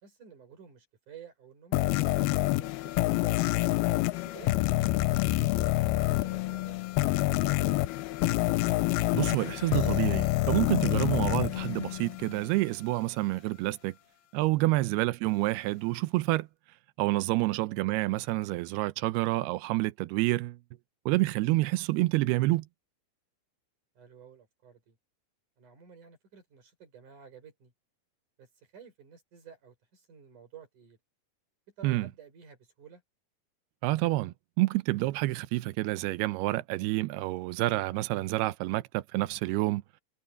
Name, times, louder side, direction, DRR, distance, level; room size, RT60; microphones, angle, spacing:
voice 1, 0.0-3.4 4.2-6.8 7.3-8.0 14.6-14.7 17.3-17.5 24.0-25.0 25.6-27.7 28.4-28.5 28.7-31.0 31.8-33.0, right 7 dB, 50° right, 6.7 m, -52 dB
sound 1, 1.7-12.5, left 18 dB, 85° left, 2.6 m, -27 dB
voice 2, 9.1-13.9 14.3-16.5 17.0-20.6 21.1-22.7 31.8-32.1 33.8-39.8, right 19 dB, 90° right, 2.7 m, -28 dB
omnidirectional pair, 4.5 m